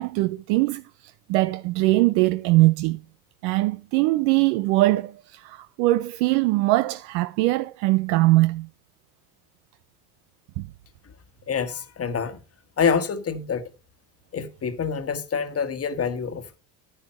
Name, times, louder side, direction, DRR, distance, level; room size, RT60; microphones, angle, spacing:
voice 1, 0.0-3.0 3.4-8.7 10.6-10.7, right 19 dB, 70° right, 0.7 m, -22 dB
voice 2, 11.5-12.4 12.8-13.6 14.3-16.6, left 6 dB, 30° left, 1.5 m, -26 dB
10.5 x 9.8 x 4.3 m
supercardioid pair, 90°, 45 cm